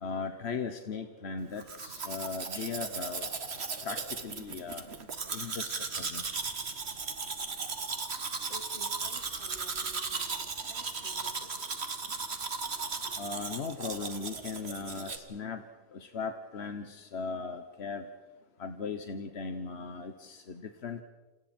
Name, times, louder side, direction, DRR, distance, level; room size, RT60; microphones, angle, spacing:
voice 1, 0.0-3.4 3.8-4.8 5.3-6.6 13.2-15.6 15.9-18.1 18.6-21.0, left 5 dB, 90° left, 7 dB, 1.4 m, -38 dB
Domestic sounds home sounds, 1.6-15.2, right 4 dB, 85° right, 1.8 m, -36 dB
voice 2, 8.4-11.7 12.8-13.3, right 1 dB, 55° left, 3 dB, 3.4 m, -53 dB
29.0 x 27.5 x 4.4 m, 1.2 s
omnidirectional pair, 1.1 m